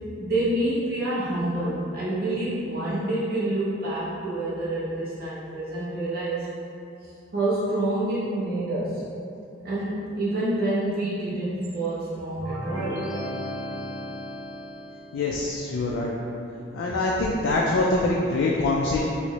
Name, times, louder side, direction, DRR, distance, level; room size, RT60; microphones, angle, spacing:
voice 1, 0.2-6.5 7.0-9.0 9.6-13.0, right 1 dB, 50° right, -9 dB, 0.6 m, -27 dB
sound 1, 12.4-15.2, equal, 85° right, 1.0 m, -34 dB
voice 2, 15.1-16.1 16.7-19.0, left 2 dB, 75° left, -3 dB, 0.3 m, -24 dB
4.3 x 2.0 x 2.8 m, 2.7 s
head